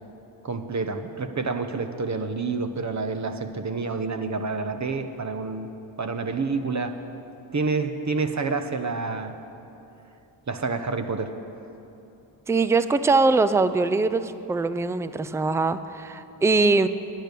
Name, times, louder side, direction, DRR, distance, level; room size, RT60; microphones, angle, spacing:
voice 1, 0.4-5.7 6.0-7.0 7.5-9.4 10.5-11.3, right 4 dB, 35° right, 8 dB, 0.9 m, -28 dB
voice 2, 12.5-16.9, right 3 dB, 5° right, 13 dB, 0.4 m, -22 dB
10.0 x 9.0 x 6.7 m, 2.9 s
supercardioid pair, 45°, 48 cm